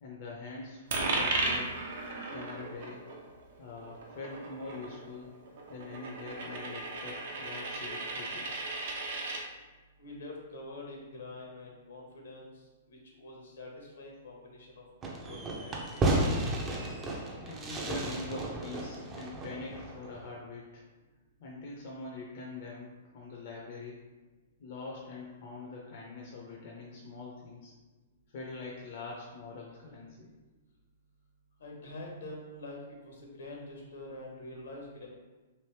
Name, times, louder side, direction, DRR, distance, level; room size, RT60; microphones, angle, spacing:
voice 1, 0.0-1.7 2.3-3.0 3.6-5.3 5.7-8.5 17.4-20.8 21.4-24.0 24.6-27.7 28.3-30.3, left 3 dB, 55° left, -3 dB, 0.6 m, -43 dB
Coin (dropping), 0.9-9.4, right 2 dB, 60° right, 0.7 m, -36 dB
voice 2, 10.0-14.8 15.3-16.2 31.6-32.8 33.0-35.1, left 2 dB, 75° left, -1 dB, 1.0 m, -46 dB
Fireworks, 15.0-20.2, right 1 dB, 20° right, 0.5 m, -33 dB
3.2 x 2.6 x 3.1 m, 1.2 s
hypercardioid pair, 120°, 0 cm